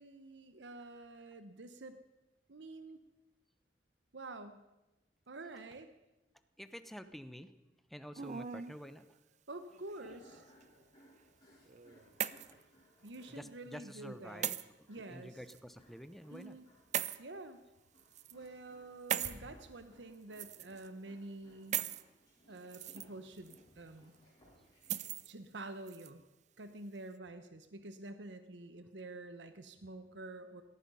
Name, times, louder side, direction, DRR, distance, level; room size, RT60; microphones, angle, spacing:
voice 1, 0.0-2.0 2.5-3.0 4.1-4.6 5.3-5.9 9.5-10.4 13.0-14.5 14.9-15.4 16.3-16.7 17.2-17.6 18.3-21.8 22.5-24.1 25.3-26.2 26.6-30.6, right 2 dB, 80° right, 10 dB, 1.0 m, -48 dB
voice 2, 6.6-7.5 7.9-9.0 12.5-12.6 13.3-14.6 15.0-16.6 17.0-17.1, equal, ahead, 11 dB, 0.8 m, -49 dB
sound 1, 8.2-8.8 9.7-10.4 11.7-12.6 13.1-13.2 14.4-14.6 15.5-15.6 16.9-17.2 18.0-18.3 19.1-19.4 20.3-20.9 21.7-22.0 22.6-23.1 23.5-23.6 24.8-25.3 25.9-26.1, right 10 dB, 40° right, 0.5 m, -38 dB
sound 2, 9.7-25.2, equal, 25° left, 7.2 m, -65 dB
sound 3, 18.8-19.8, equal, 65° left, 3.3 m, -54 dB
18.0 x 14.0 x 5.5 m, 0.99 s
head